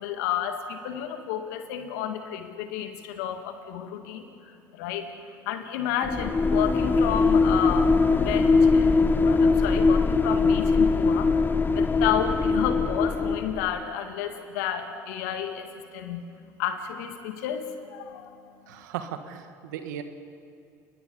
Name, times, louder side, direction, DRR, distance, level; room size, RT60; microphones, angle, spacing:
voice 1, 0.0-16.2 16.6-18.4, left 9 dB, 75° left, 6 dB, 2.1 m, -31 dB
sound 1, 6.0-13.8, left 4 dB, 20° left, 1.0 m, -21 dB
voice 2, 18.7-20.0, right 9 dB, 80° right, 8 dB, 1.7 m, -36 dB
29.5 x 20.0 x 5.6 m, 2.4 s
hypercardioid pair, 70°, 10 cm